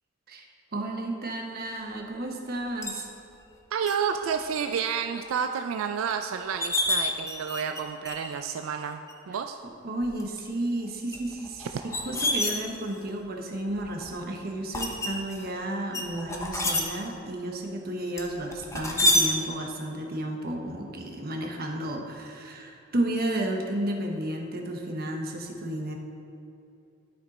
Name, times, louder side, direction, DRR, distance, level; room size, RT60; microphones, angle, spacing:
voice 1, 0.7-3.1 9.6-25.9, right 1 dB, 50° right, 2 dB, 1.0 m, -32 dB
sound 1, 2.8-3.0 3.9-4.0 4.4-4.8 5.2-5.3 6.1-6.2 6.4-7.8 8.0-8.4 9.1-9.2 10.0-10.4 11.1-13.1 13.7-14.1 14.7-15.5 15.9-16.8 18.2-19.2, left 1 dB, 15° left, 0.8 m, -28 dB
voice 2, 3.7-9.6 11.6-11.7, right 7 dB, 90° right, 6 dB, 0.3 m, -30 dB
12.0 x 5.1 x 4.2 m, 2.7 s
head